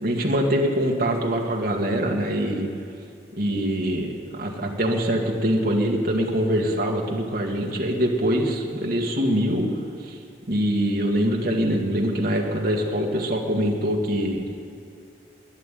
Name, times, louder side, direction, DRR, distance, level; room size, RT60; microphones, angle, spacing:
voice 1, 0.0-2.7 3.4-9.7 10.0-10.2 10.5-14.6, equal, 55° right, 0 dB, 2.0 m, -24 dB
12.5 x 11.0 x 9.2 m, 2.5 s
head